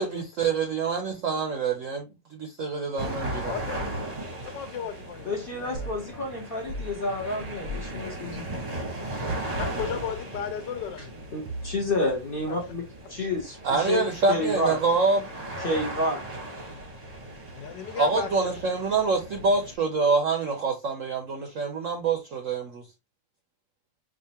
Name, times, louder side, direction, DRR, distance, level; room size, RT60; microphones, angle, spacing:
voice 1, 0.0-3.5 13.6-15.3 18.0-22.9, right 4 dB, 65° right, 0.8 m, -26 dB
sound 1, 3.0-19.7, right 1 dB, 30° right, 0.7 m, -37 dB
voice 2, 4.5-5.3 5.6-6.2 9.6-11.2 12.5-12.6 17.5-18.3, left 8 dB, 75° left, 1.3 m, -35 dB
voice 3, 5.2-8.6 11.3-14.0 14.3-14.8 15.6-16.2, left 2 dB, 45° left, 0.7 m, -30 dB
sound 2, 5.7-6.0 6.7-6.9 7.6-7.9 9.5-9.9 11.5-12.0, equal, 85° right, 0.5 m, -36 dB
4.9 x 2.5 x 2.8 m
omnidirectional pair, 2.0 m